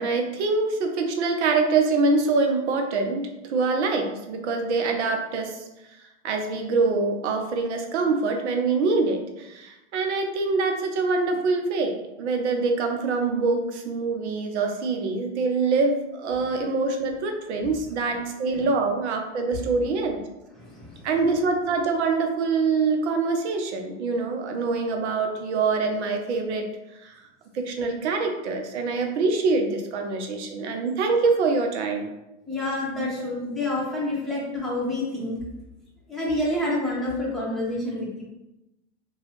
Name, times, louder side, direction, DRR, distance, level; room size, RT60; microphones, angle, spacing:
voice 1, 0.0-5.6 6.2-20.2 21.0-26.7 27.0-27.3 27.5-32.1, right 4 dB, 70° right, 4 dB, 0.7 m, -25 dB
voice 2, 20.6-21.1 32.5-35.4 36.1-38.2, left 1 dB, ahead, -6 dB, 1.0 m, -28 dB
2.9 x 2.3 x 3.2 m, 0.94 s
hypercardioid pair, 100°, 35 cm